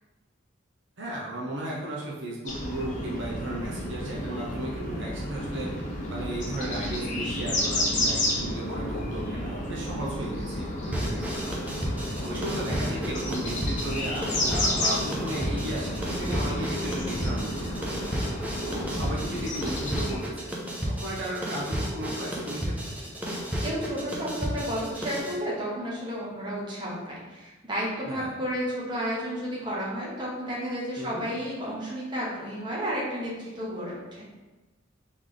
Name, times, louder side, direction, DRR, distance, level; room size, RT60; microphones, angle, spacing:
voice 1, 1.0-5.7 6.1-11.6 12.2-17.8 18.6-22.9 28.1-28.4 31.0-31.3, right 1 dB, 65° right, -4 dB, 0.7 m, -35 dB
sound 1, 2.5-20.2, left 1 dB, 40° left, 0.8 m, -31 dB
sound 2, 8.7-9.6 9.8-12.2 13.9-14.0 14.2-14.6, left 5 dB, 70° left, 0.3 m, -44 dB
sound 3, 10.9-25.4, equal, 10° right, 0.6 m, -32 dB
voice 2, 23.2-34.3, equal, 25° right, -7 dB, 1.1 m, -32 dB
3.6 x 3.2 x 3.8 m, 1.2 s
head